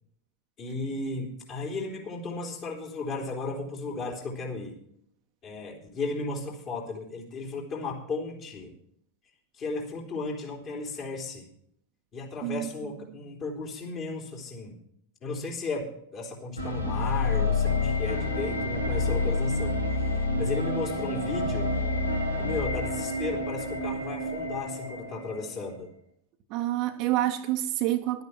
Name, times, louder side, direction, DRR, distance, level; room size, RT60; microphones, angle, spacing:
voice 1, 0.6-4.8 5.4-8.7 9.6-11.5 12.1-14.8 15.2-19.8 20.4-21.7 22.4-25.9, left 3 dB, 30° left, 3.4 m, -35 dB
sound 1, 16.6-25.6, left 2 dB, 85° left, 1.8 m, -28 dB
voice 2, 26.5-28.2, right 14 dB, 40° right, 1.1 m, -27 dB
11.5 x 9.5 x 6.2 m
figure-of-eight pair, 90°, 0 cm